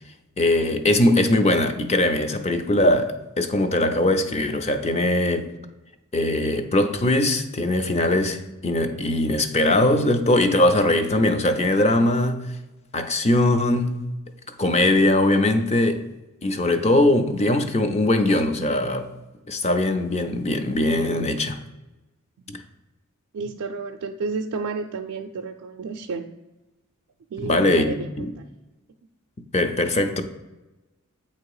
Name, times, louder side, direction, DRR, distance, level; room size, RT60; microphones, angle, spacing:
voice 1, 0.4-5.5 6.1-12.5 12.9-14.0 14.6-16.0 16.4-19.1 19.5-21.6 27.4-28.3 29.5-30.2, left 1 dB, 30° left, 0.6 m, -21 dB
voice 2, 23.3-26.3 27.3-28.5, right 4 dB, 85° right, 0.4 m, -31 dB
8.4 x 2.9 x 4.7 m
head